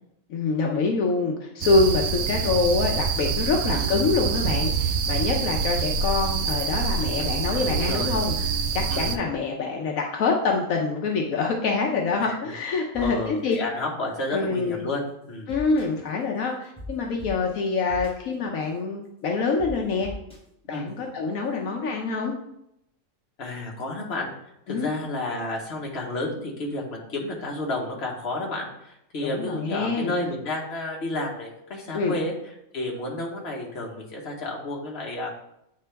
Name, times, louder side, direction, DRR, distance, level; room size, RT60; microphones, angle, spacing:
voice 1, 0.3-8.3 8.7-13.6 14.3-14.8 15.5-20.1 20.7-22.3 24.7-24.9 29.2-30.1 31.9-32.2, left 4 dB, 75° left, 0 dB, 1.2 m, -25 dB
sound 1, 1.6-9.2, right 6 dB, 80° right, 1.0 m, -26 dB
voice 2, 7.5-8.5 8.9-9.2 12.2-12.5 13.0-15.5 20.7-20.9 23.4-24.3 24.7-32.3 32.7-35.3, left 2 dB, 50° left, -1 dB, 1.4 m, -31 dB
sound 2, 12.9-13.0 13.5-13.6 15.5-15.9 16.8-16.9 17.2-17.3 17.9-18.1 19.6-19.7 20.0-20.4, equal, 5° left, 0.9 m, -40 dB
8.6 x 3.8 x 3.3 m, 0.81 s
omnidirectional pair, 1.4 m